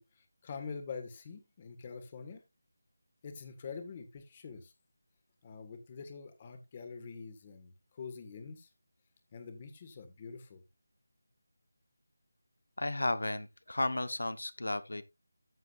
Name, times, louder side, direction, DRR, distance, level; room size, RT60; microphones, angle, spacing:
voice 1, 0.0-2.4 3.2-4.7 5.4-8.7 9.3-10.6, left 5 dB, 20° left, 1.7 m, -45 dB
voice 2, 12.8-15.0, left 2 dB, 90° left, 1.1 m, -33 dB
14.0 x 7.3 x 2.5 m
figure-of-eight pair, 175°, 0 cm